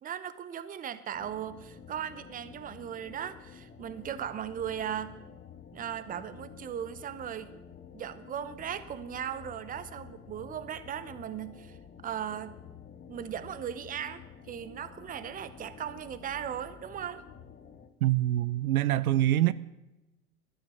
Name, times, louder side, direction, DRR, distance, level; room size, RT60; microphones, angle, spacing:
voice 1, 0.0-5.2 5.7-7.5 7.9-11.8 12.0-12.6 13.1-17.2, right 9 dB, 20° right, 0.8 m, -38 dB
sound 1, 1.1-17.9, left 7 dB, 20° left, 1.2 m, -50 dB
voice 2, 18.0-19.5, right 14 dB, 70° right, 0.6 m, -25 dB
12.0 x 11.5 x 7.0 m
hypercardioid pair, 95°, 46 cm